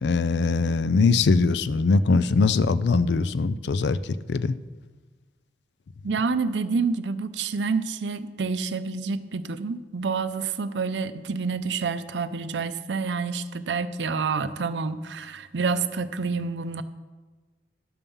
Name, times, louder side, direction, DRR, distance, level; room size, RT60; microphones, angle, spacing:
voice 1, 0.0-4.6, left 4 dB, 80° left, 15 dB, 0.4 m, -22 dB
voice 2, 6.0-16.8, right 4 dB, 90° right, 12 dB, 0.6 m, -28 dB
11.0 x 7.0 x 5.4 m, 1.3 s
head